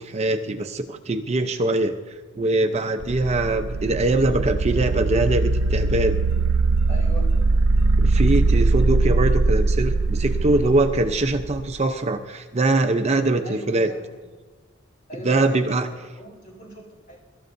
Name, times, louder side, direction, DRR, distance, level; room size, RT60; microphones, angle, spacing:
voice 1, 0.0-2.0 2.4-6.2 8.0-13.9 15.2-15.9, right 2 dB, 35° right, 5 dB, 0.6 m, -22 dB
sound 1, 3.0-11.8, right 3 dB, 85° right, 0.5 m, -21 dB
sound 2, 4.9-10.6, equal, 80° left, 4.0 m, -49 dB
voice 2, 6.9-7.3 13.4-14.2 15.1-17.2, right 1 dB, 40° left, -2 dB, 3.7 m, -39 dB
24.0 x 13.0 x 2.6 m, 1.4 s
head